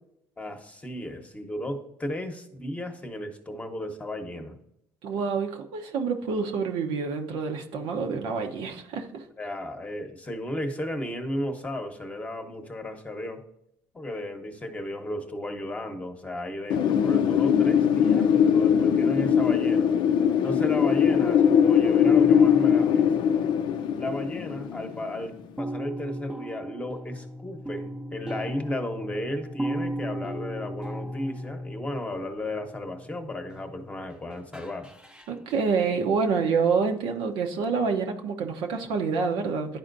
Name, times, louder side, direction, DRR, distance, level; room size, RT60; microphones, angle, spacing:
voice 1, 0.4-4.6 9.4-13.4 13.9-19.9 20.4-23.1 23.9-34.9, left 1 dB, 15° left, 5 dB, 1.0 m, -34 dB
voice 2, 5.0-9.2 35.3-39.8, right 5 dB, 75° right, 3 dB, 0.8 m, -27 dB
Wind, 16.7-25.4, left 8 dB, 65° left, 0.5 m, -21 dB
sound 1, 22.1-24.6 24.9-25.2 25.6-34.1 34.5-35.6, equal, 10° right, 0.6 m, -37 dB
10.5 x 4.3 x 2.6 m, 0.77 s
supercardioid pair, 85°, 9 cm